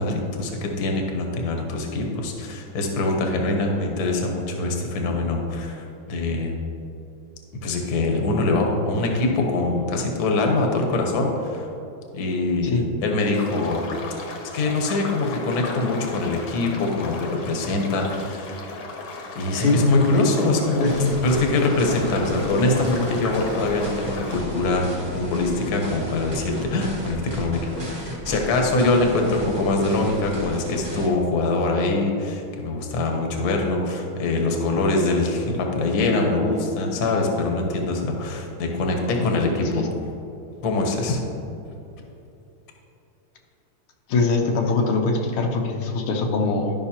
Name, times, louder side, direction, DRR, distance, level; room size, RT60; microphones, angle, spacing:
voice 1, 0.0-6.5 7.6-11.7 12.1-13.9 14.5-18.6 19.3-21.0 21.2-39.8 40.6-41.2, left 2 dB, 55° left, 2 dB, 1.3 m, -23 dB
sound 1, 13.3-24.4, left 3 dB, 70° left, 1.6 m, -36 dB
voice 2, 20.8-21.2 39.2-39.9 44.1-46.7, left 3 dB, 90° left, 2 dB, 1.7 m, -23 dB
sound 2, 20.8-31.1, right 1 dB, 20° right, 0.8 m, -34 dB
11.5 x 5.7 x 2.8 m, 2.8 s
omnidirectional pair, 2.3 m